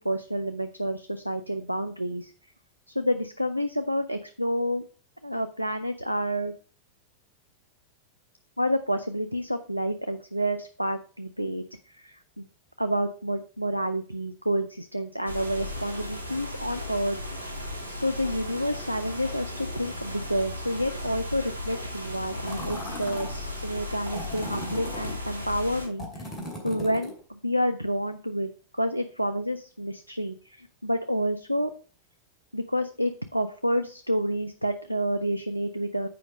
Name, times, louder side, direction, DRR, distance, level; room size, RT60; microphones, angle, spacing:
voice 1, 0.0-2.3 2.9-4.8 5.2-6.5 8.6-12.5 12.8-17.2 17.9-26.3 26.6-31.7 32.5-36.1, equal, 90° right, 9 dB, 0.4 m, -29 dB
sound 1, 15.2-25.9, left 1 dB, 85° left, 2.2 m, -36 dB
sound 2, 22.5-23.3 24.1-25.1 26.0-27.2, left 1 dB, 25° left, 2.5 m, -37 dB
7.6 x 5.0 x 4.9 m, 0.39 s
figure-of-eight pair, 90°, 0 cm